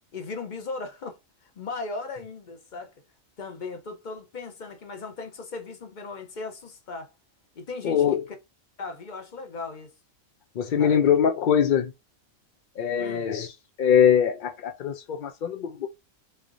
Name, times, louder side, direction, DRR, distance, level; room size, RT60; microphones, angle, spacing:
voice 1, 0.1-2.9 3.4-7.1 7.6-8.0 8.8-9.9 10.8-11.0 13.0-13.3, left 3 dB, 40° left, 0.8 m, -37 dB
voice 2, 7.8-8.3 10.6-11.9 12.8-15.9, left 8 dB, 65° left, 0.5 m, -22 dB
3.5 x 3.3 x 2.5 m
omnidirectional pair, 1.4 m